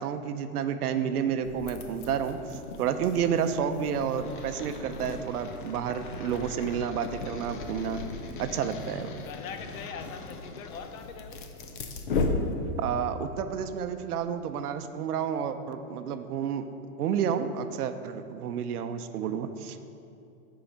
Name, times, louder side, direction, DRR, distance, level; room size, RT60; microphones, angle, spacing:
voice 1, 0.0-8.0 8.4-9.2 12.8-16.7 17.0-19.9, right 8 dB, 75° right, 9 dB, 0.7 m, -30 dB
sound 1, 1.4-13.0, left 3 dB, 35° left, 0.5 m, -36 dB
voice 2, 7.5-8.9 9.2-11.4 19.6-19.9, left 6 dB, 60° left, 7 dB, 0.9 m, -44 dB
10.5 x 4.8 x 5.2 m, 2.7 s
supercardioid pair, 170°, 46 cm